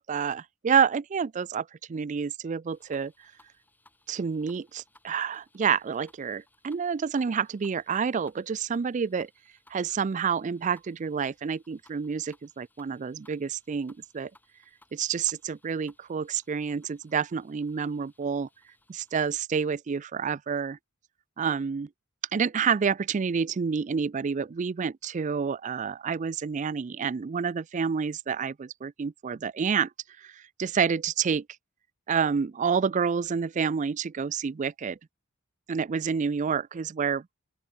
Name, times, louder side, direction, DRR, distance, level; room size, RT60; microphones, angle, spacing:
voice 1, 0.0-3.1 4.1-9.3 9.7-14.3 14.9-18.5 18.9-20.8 21.4-21.9 22.3-29.9 30.2-31.4 32.1-35.0 35.7-37.4, right 6 dB, 35° right, 0.3 m, -28 dB
sound 1, 2.7-19.4, left 2 dB, 10° left, 6.1 m, -64 dB
open air
head